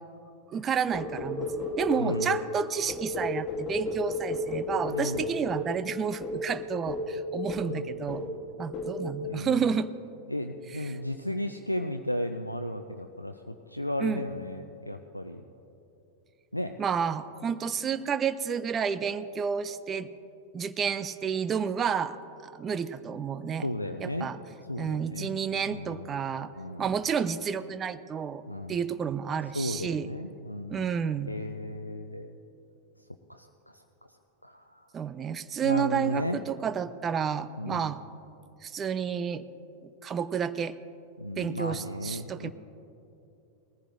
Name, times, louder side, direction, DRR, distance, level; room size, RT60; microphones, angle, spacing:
voice 1, 0.5-8.2 8.6-9.9 10.7-11.0 14.0-14.2 16.8-20.1 20.5-22.2 22.4-23.7 24.0-24.4 24.8-26.5 26.8-28.4 28.7-30.1 30.7-31.3 34.9-38.0 38.6-39.4 40.0-40.8 41.4-42.5, right 7 dB, 25° right, 13 dB, 0.4 m, -30 dB
sound 1, 0.9-2.4 2.9-5.7 6.2-6.4 6.9-7.1 7.5-7.8 8.1-8.4 8.7-9.0, left 2 dB, 20° left, 2.4 m, -32 dB
voice 2, 2.0-2.4 4.9-5.2 7.6-8.3 9.3-9.6 10.3-15.4 16.5-16.8 23.6-24.3 24.7-25.3 25.7-26.1 26.6-26.8 28.4-28.8 29.5-30.9 31.3-32.3 33.3-33.5 34.4-34.6 35.6-36.4 37.6-37.9 41.2-42.5, left 1 dB, 85° left, 6 dB, 0.4 m, -34 dB
20.0 x 14.5 x 2.6 m, 2.8 s
figure-of-eight pair, 90°, 0 cm